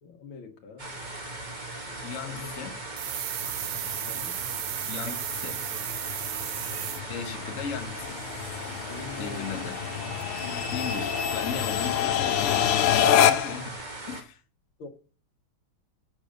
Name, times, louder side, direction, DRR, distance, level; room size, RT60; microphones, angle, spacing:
voice 1, 0.0-0.9 2.3-2.6 3.9-4.4 8.9-9.7 10.4-11.3 14.8-14.9, left 5 dB, 70° left, 2.1 m, -43 dB
sound 1, 0.8-14.2, right 2 dB, 25° right, 1.4 m, -39 dB
voice 2, 2.0-2.7 4.9-5.6 7.1-8.2 9.2-9.7 10.7-13.7 14.1-14.4, left 6 dB, 40° left, 1.3 m, -37 dB
sound 2, 3.0-7.0, right 13 dB, 85° right, 1.5 m, -34 dB
sound 3, 3.4-13.7, left 9 dB, 90° left, 1.7 m, -28 dB
7.8 x 6.2 x 6.5 m
omnidirectional pair, 2.4 m